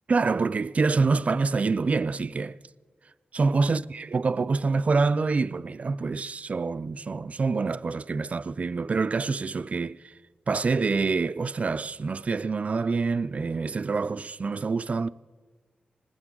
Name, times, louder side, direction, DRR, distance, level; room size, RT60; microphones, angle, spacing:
voice 1, 0.1-2.6 3.3-10.1 10.5-15.1, right 4 dB, 45° right, 0.4 m, -26 dB
19.5 x 15.0 x 3.7 m
wide cardioid pair, 85°, 3 cm